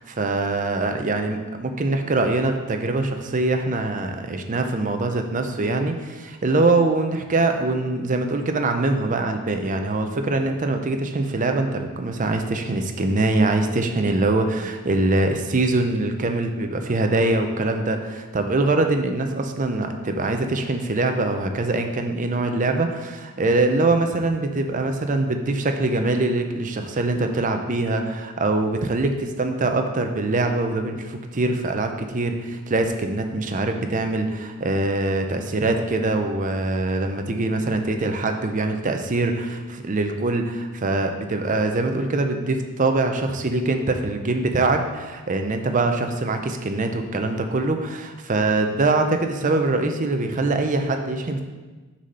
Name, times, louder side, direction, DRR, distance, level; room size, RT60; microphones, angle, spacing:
voice 1, 0.0-51.4, right 2 dB, 35° right, 5 dB, 0.6 m, -23 dB
6.3 x 4.1 x 5.4 m, 1.2 s
head